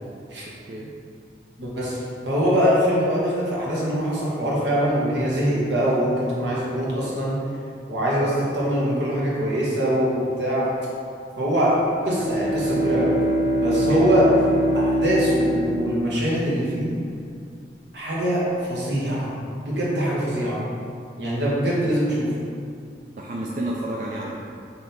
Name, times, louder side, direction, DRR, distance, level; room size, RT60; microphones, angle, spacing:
voice 1, 0.5-0.9 13.7-14.2 23.2-24.4, right 1 dB, 45° right, -3 dB, 0.3 m, -31 dB
voice 2, 1.6-7.4 7.9-10.7 11.4-13.2 13.6-14.3 14.7-16.9 17.9-19.3 19.6-20.6 21.2-22.3, equal, 80° right, -6 dB, 1.1 m, -23 dB
Bowed string instrument, 12.0-16.6, right 1 dB, 20° left, 1.0 m, -23 dB
4.1 x 2.7 x 3.9 m, 2.3 s
head